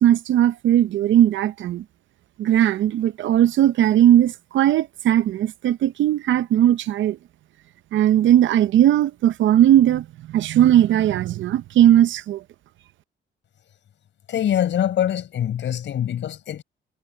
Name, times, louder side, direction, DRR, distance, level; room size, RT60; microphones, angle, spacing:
voice 1, 0.0-1.8 2.4-7.2 7.9-10.0 10.3-12.4, right 11 dB, 75° right, 0.7 m, -18 dB
voice 2, 14.3-16.6, left 10 dB, 70° left, 5.6 m, -24 dB
cardioid pair, 90°, 20 cm